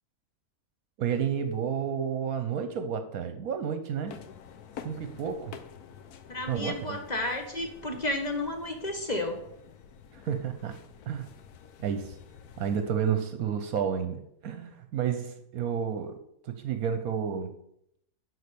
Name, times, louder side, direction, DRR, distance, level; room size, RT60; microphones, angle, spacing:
voice 1, 1.0-4.2 4.8-5.6 6.5-7.0 10.1-10.8 11.0-11.3 11.8-12.2 12.6-17.6, right 7 dB, 70° right, 8 dB, 1.2 m, -31 dB
sound 1, 4.1-12.9, left 7 dB, 85° left, 1.3 m, -49 dB
voice 2, 6.3-9.4, left 1 dB, 30° left, 4 dB, 1.2 m, -32 dB
11.0 x 4.4 x 6.8 m, 0.77 s
omnidirectional pair, 1.6 m